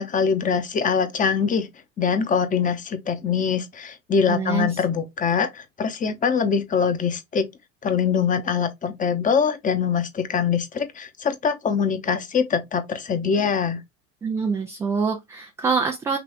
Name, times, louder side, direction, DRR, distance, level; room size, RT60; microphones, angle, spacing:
voice 1, 0.0-1.7 2.0-7.5 7.8-13.8, left 6 dB, 20° left, 0.9 m, -23 dB
voice 2, 4.3-4.8 14.2-16.2, right 5 dB, 10° right, 0.3 m, -25 dB
6.0 x 2.5 x 3.4 m
figure-of-eight pair, 80°, 41 cm